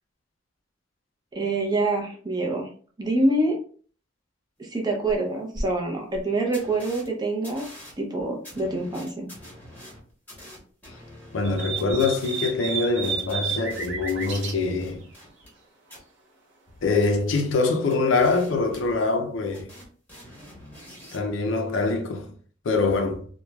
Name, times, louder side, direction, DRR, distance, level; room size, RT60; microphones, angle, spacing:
voice 1, 1.3-2.7 3.0-3.6 4.6-7.7 8.0-9.3, right 2 dB, 20° right, 0.5 m, -26 dB
sound 1, 5.1-5.2 5.5-5.6 6.1-6.2 6.5-7.1 7.4-15.6 15.9-16.0 16.7-19.3 19.5-21.2, equal, 10° left, 1.0 m, -43 dB
voice 2, 11.3-15.0 16.8-19.7 21.1-22.3 22.6-23.3, left 3 dB, 80° left, 0.5 m, -24 dB
sound 2, 11.4-14.5, right 6 dB, 65° right, 0.6 m, -31 dB
3.0 x 2.1 x 2.2 m
head